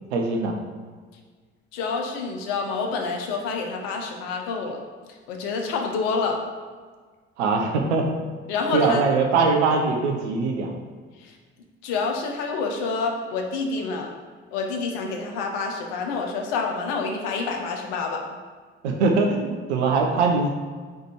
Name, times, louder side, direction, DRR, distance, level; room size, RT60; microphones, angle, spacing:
voice 1, 0.1-0.5 7.4-8.2 8.7-10.7 18.8-20.5, right 4 dB, 75° right, 2 dB, 1.0 m, -22 dB
voice 2, 1.7-4.8 5.3-6.4 8.5-9.0 11.8-14.1 14.5-18.2, left 4 dB, 65° left, 3 dB, 1.0 m, -27 dB
4.8 x 4.7 x 4.5 m, 1.5 s
figure-of-eight pair, 55°, 34 cm